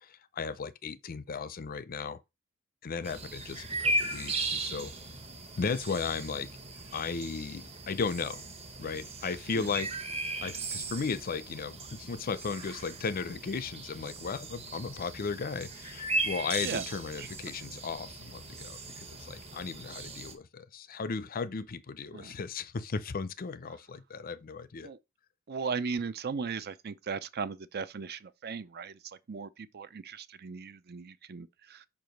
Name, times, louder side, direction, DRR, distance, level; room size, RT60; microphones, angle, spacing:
voice 1, 0.0-2.2 2.8-4.9 5.5-6.5 6.9-8.4 8.8-9.9 10.4-24.9, left 5 dB, 40° left, 0.5 m, -36 dB
sound 1, 3.0-20.3, right 2 dB, 30° right, 1.1 m, -37 dB
voice 2, 25.5-31.9, right 5 dB, 50° right, 0.5 m, -37 dB
5.7 x 4.7 x 5.2 m
head